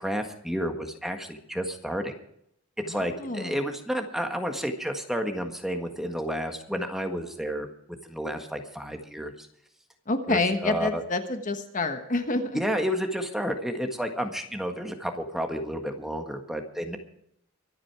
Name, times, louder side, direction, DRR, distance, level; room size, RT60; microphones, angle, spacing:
voice 1, 0.0-2.1 2.9-7.7 8.0-9.5 10.3-11.0 12.5-17.0, equal, ahead, 4 dB, 1.6 m, -31 dB
voice 2, 2.9-3.6 10.1-12.6, left 2 dB, 40° left, 7 dB, 1.3 m, -28 dB
24.0 x 8.8 x 4.8 m, 0.71 s
head